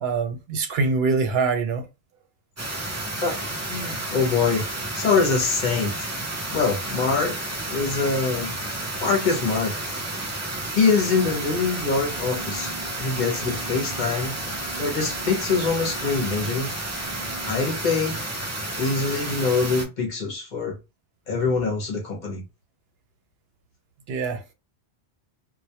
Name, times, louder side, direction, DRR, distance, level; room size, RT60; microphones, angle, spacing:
voice 1, 0.0-1.9 24.1-24.5, right 4 dB, 75° right, 0.8 m, -24 dB
sound 1, 2.6-19.9, right 2 dB, 25° right, 0.4 m, -31 dB
voice 2, 3.2-6.1 6.5-8.5 9.0-9.8 10.7-12.7 13.0-14.4 14.8-16.7 17.4-18.3 18.8-20.8 21.3-22.4, left 4 dB, 50° left, 0.8 m, -24 dB
sound 2, 11.1-17.6, right 3 dB, 45° right, 0.8 m, -43 dB
2.2 x 2.1 x 2.8 m
omnidirectional pair, 1.1 m